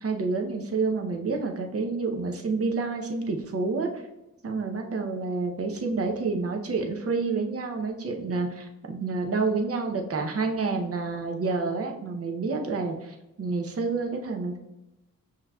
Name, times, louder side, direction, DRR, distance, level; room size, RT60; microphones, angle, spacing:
voice 1, 0.0-3.9 4.4-14.6, right 4 dB, 40° right, 3 dB, 0.8 m, -29 dB
5.6 x 2.9 x 2.3 m, 0.95 s
supercardioid pair, 55°, 35 cm